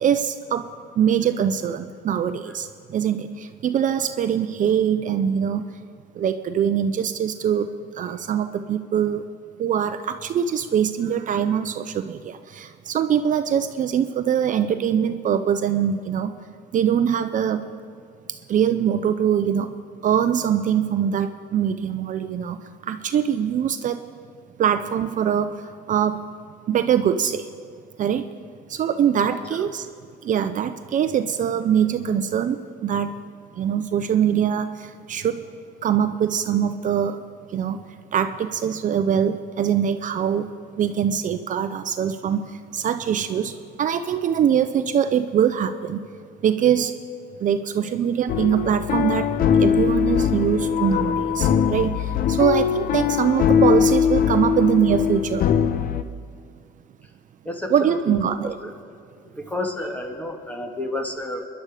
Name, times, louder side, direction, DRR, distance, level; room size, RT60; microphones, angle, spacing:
voice 1, 0.0-0.6 1.0-5.6 6.2-7.7 8.0-9.2 9.6-16.3 16.7-17.6 18.5-19.7 20.0-22.6 22.9-24.0 24.6-25.5 25.9-26.2 26.7-27.4 28.0-28.2 28.7-29.9 30.2-33.1 33.6-35.4 35.8-37.2 37.5-37.8 38.1-40.5 40.8-42.5 42.7-43.5 43.8-46.0 46.4-46.9 47.4-49.3 49.6-55.5 57.7-58.5, right 8 dB, 50° right, 9 dB, 0.6 m, -23 dB
sound 1, 48.3-56.0, left 8 dB, 60° left, 0.7 m, -21 dB
voice 2, 57.5-58.2 58.4-58.7 59.2-61.5, left 1 dB, 10° left, 4 dB, 1.8 m, -31 dB
25.0 x 11.0 x 5.0 m, 2.2 s
cardioid pair, 110°, 17 cm